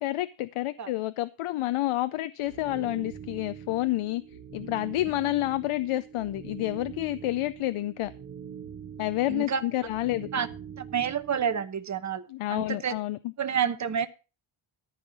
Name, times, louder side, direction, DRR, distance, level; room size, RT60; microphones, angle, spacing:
voice 1, 0.0-4.2 4.5-8.1 9.0-10.3 12.3-13.2, left 16 dB, 90° left, 0.6 m, -29 dB
sound 1, 2.4-11.6, right 8 dB, 70° right, 2.2 m, -44 dB
voice 2, 9.3-9.6 10.3-10.5 10.9-12.9 13.4-14.1, right 7 dB, 35° right, 1.0 m, -29 dB
13.5 x 5.5 x 6.1 m
wide cardioid pair, 130°, 49 cm